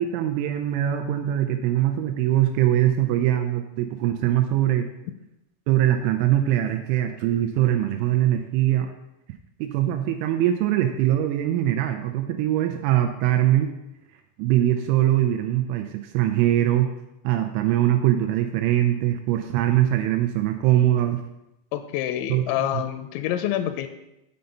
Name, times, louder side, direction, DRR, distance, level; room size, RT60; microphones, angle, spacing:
voice 1, 0.0-4.9 5.7-8.9 9.6-13.7 14.4-16.9 17.2-21.2 22.3-22.7, right 12 dB, 85° right, 5 dB, 2.9 m, -22 dB
voice 2, 21.7-23.9, left 11 dB, 85° left, 9 dB, 2.7 m, -27 dB
6.8 x 5.5 x 5.2 m, 0.90 s
omnidirectional pair, 5.6 m